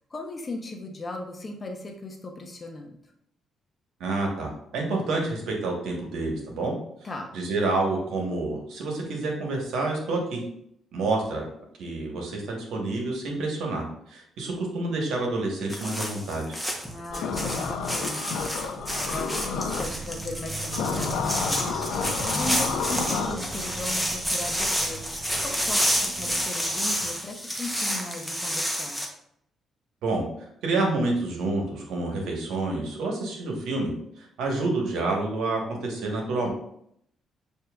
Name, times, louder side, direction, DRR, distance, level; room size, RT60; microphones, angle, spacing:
voice 1, 0.1-3.0 7.0-7.3 16.9-18.6 19.1-21.6 21.9-29.0, left 2 dB, 30° left, 3 dB, 0.8 m, -37 dB
voice 2, 4.0-6.7 7.3-10.4 10.9-11.5 11.8-16.6 30.0-30.2 30.6-33.9 34.2-36.5, right 2 dB, 85° right, 0 dB, 1.2 m, -28 dB
sound 1, 15.7-29.1, equal, 5° right, 0.8 m, -29 dB
sound 2, 17.1-19.9 20.7-23.4, left 5 dB, 85° left, 0.5 m, -30 dB
sound 3, 18.8-26.5, right 4 dB, 55° right, 0.6 m, -41 dB
6.6 x 2.7 x 2.3 m, 0.72 s
cardioid pair, 90°, 0 cm